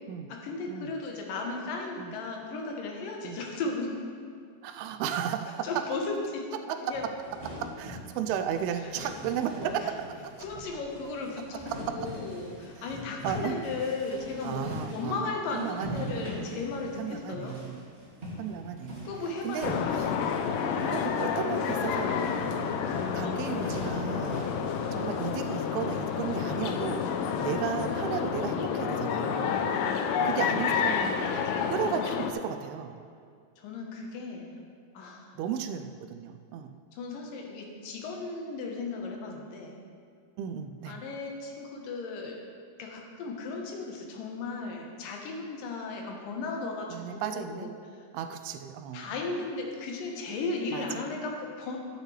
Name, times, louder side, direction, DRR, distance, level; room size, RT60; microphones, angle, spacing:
voice 1, 0.0-3.9 5.6-6.5 6.8-7.1 9.8-9.9 10.4-14.6 14.9-17.6 19.0-20.2 24.3-24.6 29.4-30.0 33.6-34.5 34.9-35.4 36.9-39.8 40.9-42.4 42.8-47.7 48.9-51.8, left 3 dB, 70° left, 1 dB, 2.5 m, -36 dB
voice 2, 4.6-5.8 7.6-9.8 10.1-10.3 13.2-13.6 14.4-16.2 17.0-17.8 18.4-19.1 19.4-20.1 20.9-22.7 23.1-24.5 24.9-29.6 30.3-33.0 35.4-36.7 40.4-41.0 46.9-47.7 48.1-49.1 50.7-51.0, right 8 dB, 85° right, 8 dB, 2.5 m, -34 dB
sound 1, 6.8-25.7, equal, 25° right, 1.6 m, -42 dB
sound 2, 19.6-32.3, left 7 dB, 90° left, 1.9 m, -29 dB
13.0 x 9.0 x 3.2 m, 2.3 s
omnidirectional pair, 4.5 m